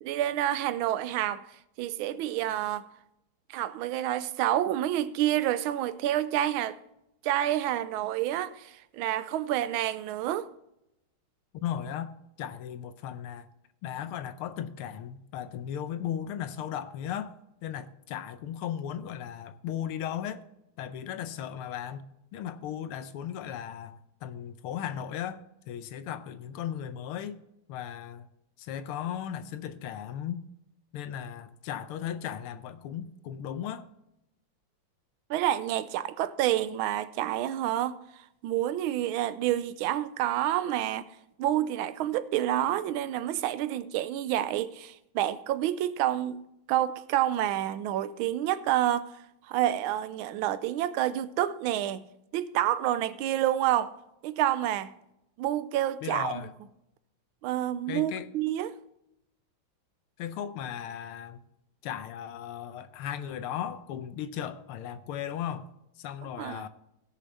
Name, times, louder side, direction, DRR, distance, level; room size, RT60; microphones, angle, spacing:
voice 1, 0.0-1.4 1.8-2.9 3.5-6.8 7.2-10.5 35.3-41.1 41.4-46.4 46.7-49.2 49.5-52.0 52.3-53.9 54.2-54.9 55.4-56.5 57.4-58.8 66.4-66.7, right 12 dB, 80° right, 1.4 m, -28 dB
voice 2, 11.5-12.1 12.4-13.5 13.8-17.3 17.6-20.4 20.8-22.0 22.3-27.4 27.7-28.3 28.6-30.4 30.9-33.9 56.0-56.5 57.9-58.3 60.2-61.4 61.8-65.7 66.0-66.7, left 9 dB, 90° left, 1.6 m, -36 dB
16.0 x 6.8 x 4.1 m
omnidirectional pair, 2.3 m